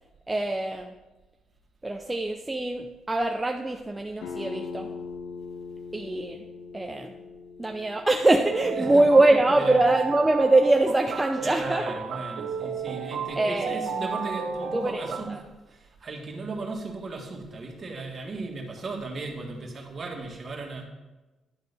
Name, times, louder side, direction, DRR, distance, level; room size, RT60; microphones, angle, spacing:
voice 1, 0.3-1.0 1.8-4.9 5.9-6.4 6.7-7.1 7.6-12.0 13.4-13.8 14.7-15.4, right 2 dB, 15° right, 3 dB, 0.5 m, -23 dB
sound 1, 4.2-9.6, left 5 dB, 80° left, 0.9 m, -41 dB
sound 2, 8.5-15.2, right 5 dB, 70° right, 0.8 m, -33 dB
voice 2, 8.7-9.1 9.5-9.9 11.3-20.8, right 3 dB, 40° right, 1 dB, 1.7 m, -36 dB
10.5 x 3.9 x 6.7 m, 1.1 s
cardioid pair, 90°, 0 cm